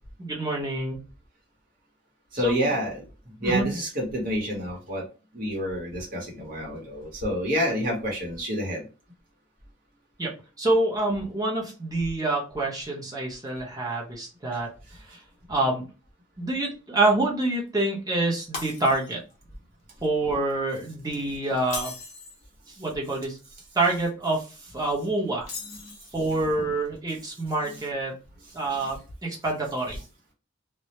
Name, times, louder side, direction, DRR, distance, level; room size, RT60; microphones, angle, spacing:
voice 1, 0.2-1.0 2.4-2.7 3.4-3.6 10.2-10.3 10.6-14.7 15.1-15.2 15.5-15.8 16.4-19.2 20.0-21.9 22.8-23.4 23.7-24.5 24.7-25.5 26.1-28.1 28.5-30.0, right 2 dB, 20° right, -2 dB, 0.8 m, -26 dB
voice 2, 2.3-3.0 3.4-5.0 5.3-8.8 25.0-25.3 25.6-25.9 28.8-28.9, equal, 50° right, -1 dB, 1.0 m, -28 dB
Shatter, 18.5-19.3 19.7-20.0 21.6-22.4 25.4-26.3, left 3 dB, 40° left, 0.8 m, -38 dB
2.2 x 2.1 x 2.8 m, 0.33 s
head